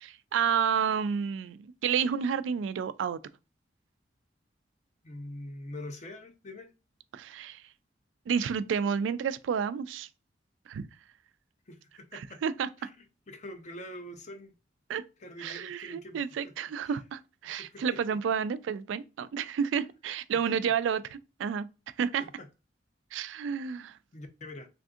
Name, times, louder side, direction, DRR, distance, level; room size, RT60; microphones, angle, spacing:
voice 1, 0.0-3.2 7.1-7.6 8.3-10.1 10.7-10.9 12.1-12.7 14.9-15.0 15.4-21.7 22.0-22.2 23.1-24.0, right 7 dB, 90° right, 0.3 m, -30 dB
voice 2, 5.0-6.7 11.7-12.4 12.8-12.9 13.3-14.5 15.2-16.5 16.8-17.0 17.4-17.8 22.2-22.5 24.1-24.7, left 1 dB, 40° left, 0.5 m, -44 dB
3.4 x 2.6 x 2.4 m
head